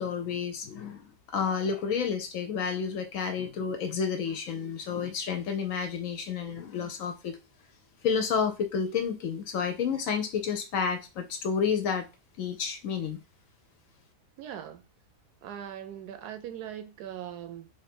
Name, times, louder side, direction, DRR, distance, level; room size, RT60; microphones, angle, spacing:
voice 1, 0.0-7.4 8.0-12.1 12.4-13.2, left 6 dB, 70° left, 0.9 m, -30 dB
voice 2, 14.4-14.8 15.4-17.7, right 10 dB, 80° right, 1.2 m, -40 dB
3.2 x 2.5 x 4.2 m
omnidirectional pair, 1.7 m